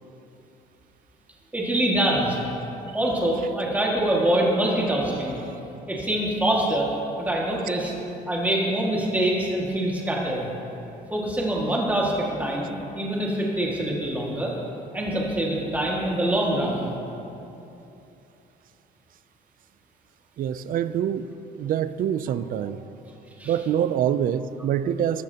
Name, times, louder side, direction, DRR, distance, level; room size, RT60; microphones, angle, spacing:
voice 1, 1.5-2.4 2.9-5.4 5.9-6.9 7.2-7.9 8.3-10.5 11.1-14.5 14.9-16.9 22.6-22.7 23.4-23.5, right 1 dB, 10° right, -3 dB, 2.0 m, -24 dB
voice 2, 20.4-21.3 21.6-22.8 23.4-25.2, right 9 dB, 55° right, 13 dB, 0.5 m, -25 dB
14.5 x 12.5 x 2.9 m, 2.9 s
cardioid pair, 110°, 17 cm